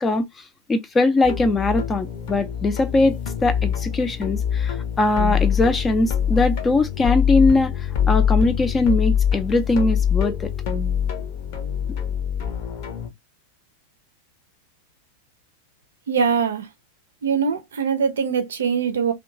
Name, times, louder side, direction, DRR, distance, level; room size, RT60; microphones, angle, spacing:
voice 1, 0.0-10.5, left 2 dB, 15° left, 0.4 m, -21 dB
sound 1, 1.2-13.1, left 8 dB, 45° left, 0.8 m, -24 dB
voice 2, 16.1-16.7 17.2-19.1, right 6 dB, 65° right, 0.5 m, -22 dB
2.8 x 2.2 x 2.5 m
figure-of-eight pair, 90°, 0 cm